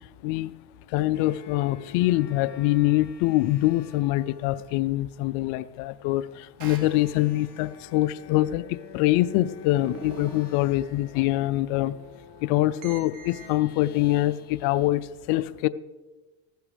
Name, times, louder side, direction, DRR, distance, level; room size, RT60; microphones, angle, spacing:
voice 1, 0.2-0.5 0.9-12.0 12.4-15.7, left 16 dB, 80° left, 16 dB, 0.6 m, -24 dB
sound 1, 1.1-4.8 6.5-14.9, left 6 dB, 55° left, 2.0 m, -49 dB
sound 2, 6.6-7.6 9.8-11.0 12.8-13.5, equal, 80° right, 2.4 m, -43 dB
15.0 x 12.5 x 3.4 m, 1.2 s
supercardioid pair, 85°, 49 cm